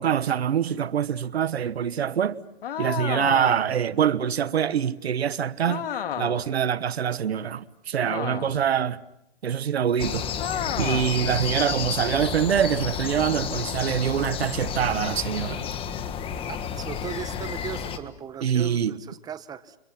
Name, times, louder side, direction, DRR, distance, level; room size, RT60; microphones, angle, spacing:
voice 1, 0.0-2.4 2.8-5.8 6.2-9.0 9.4-10.3 10.8-15.6 18.4-19.0, right 8 dB, 85° right, 1.2 m, -25 dB
sound 1, 2.6-3.8 5.7-6.5 8.0-8.7 10.4-11.2, left 9 dB, 65° left, 2.4 m, -32 dB
sound 2, 10.0-18.0, left 8 dB, 15° left, 1.6 m, -31 dB
voice 2, 16.5-19.8, right 8 dB, 10° right, 1.0 m, -38 dB
30.0 x 26.5 x 5.9 m
hypercardioid pair, 145°, 31 cm